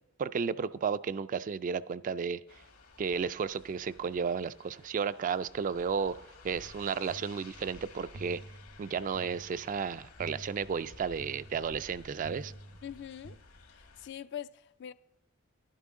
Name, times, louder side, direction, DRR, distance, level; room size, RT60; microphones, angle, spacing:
voice 1, 0.2-2.4 3.0-6.2 6.4-8.4 8.8-12.5, right 6 dB, 35° right, 0.3 m, -33 dB
sound 1, 2.5-14.1, left 3 dB, 70° left, 1.5 m, -55 dB
sound 2, 6.5-13.4, right 1 dB, 75° right, 0.9 m, -50 dB
voice 2, 12.8-13.4 13.7-14.9, left 9 dB, 55° left, 0.4 m, -43 dB
11.5 x 11.0 x 3.6 m
head